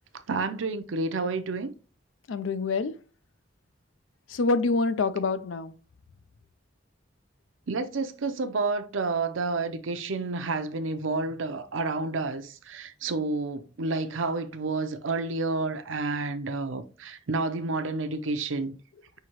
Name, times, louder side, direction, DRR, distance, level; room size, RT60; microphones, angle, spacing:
voice 1, 0.3-1.7 7.7-18.7, right 3 dB, 80° right, 0.6 m, -30 dB
voice 2, 2.3-2.9 4.3-5.7, left 3 dB, 80° left, 0.4 m, -26 dB
5.7 x 2.8 x 3.0 m
head